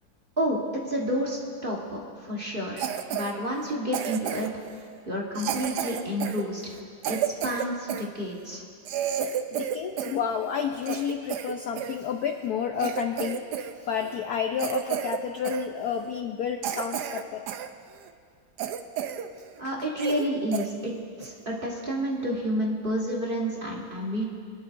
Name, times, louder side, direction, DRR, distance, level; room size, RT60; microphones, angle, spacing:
voice 1, 0.9-4.5 5.1-6.8 7.1-8.6 19.6-20.9 21.2-24.2, equal, 30° right, -3 dB, 1.3 m, -30 dB
Cough, 2.8-3.3 3.9-4.6 5.4-8.1 8.5-8.6 8.8-10.2 10.5-12.0 12.4-12.5 12.8-13.7 14.0-14.2 14.6-15.2 15.4-15.7 16.2-16.3 16.6-17.7 18.1-18.2 18.6-19.3 19.6-19.7 20.0-20.3 20.5-20.7 21.2-21.4, right 9 dB, 70° right, 1.0 m, -31 dB
voice 2, 9.2-17.4, left 7 dB, 70° left, 5 dB, 0.9 m, -30 dB
25.0 x 11.0 x 2.6 m, 2.2 s
omnidirectional pair, 2.2 m